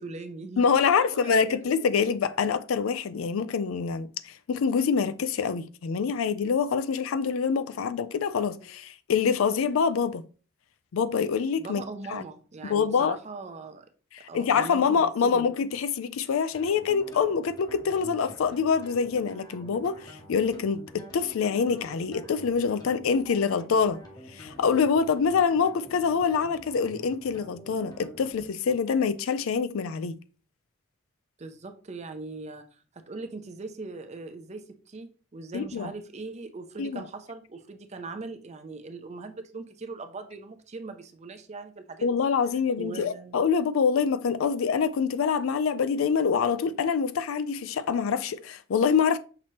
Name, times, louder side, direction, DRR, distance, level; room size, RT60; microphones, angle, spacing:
voice 1, 0.0-1.7 11.6-13.9 14.3-15.5 31.4-32.6 32.9-42.3 42.8-43.4, right 3 dB, 35° right, 0.5 m, -40 dB
voice 2, 0.6-10.2 10.9-11.8 12.1-12.2 12.6-13.2 14.3-24.0 24.3-30.2 35.5-35.9 36.8-37.0 42.0-49.2, left 6 dB, 80° left, 0.4 m, -25 dB
sound 1, 16.5-28.3, equal, 20° left, 0.8 m, -47 dB
5.9 x 2.9 x 3.0 m
head